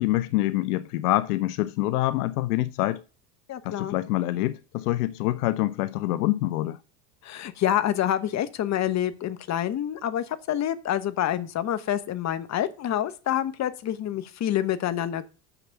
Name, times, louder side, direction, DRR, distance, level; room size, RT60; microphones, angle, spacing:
voice 1, 0.0-3.0 3.6-6.8, left 16 dB, 75° left, 0.6 m, -26 dB
voice 2, 3.5-4.0 7.2-15.3, left 11 dB, 35° left, 1.1 m, -27 dB
6.8 x 6.0 x 6.9 m
hypercardioid pair, 90°, 46 cm